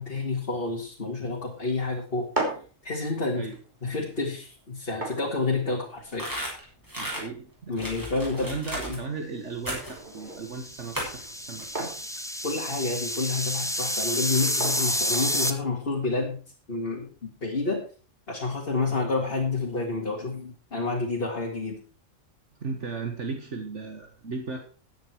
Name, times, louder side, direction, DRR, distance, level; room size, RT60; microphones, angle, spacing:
voice 1, 0.0-2.3 2.8-3.5 3.8-6.3 7.7-8.5 8.9-9.0 12.4-16.4 16.7-17.8 18.3-21.8, left 3 dB, 45° left, -2 dB, 2.5 m, -29 dB
sound 1, 2.1-16.0, right 2 dB, 35° right, 3.7 m, -40 dB
sound 2, 6.1-7.2 7.8-9.0 9.7-10.0 10.9-11.3 11.6-11.7, equal, 15° right, 6.2 m, -34 dB
voice 2, 7.0-7.9 8.4-11.9 22.6-24.6, right 4 dB, 60° right, 4 dB, 1.8 m, -36 dB
sound 3, 10.4-15.5, equal, 5° left, 0.9 m, -29 dB
14.5 x 9.3 x 4.6 m, 0.39 s
omnidirectional pair, 1.4 m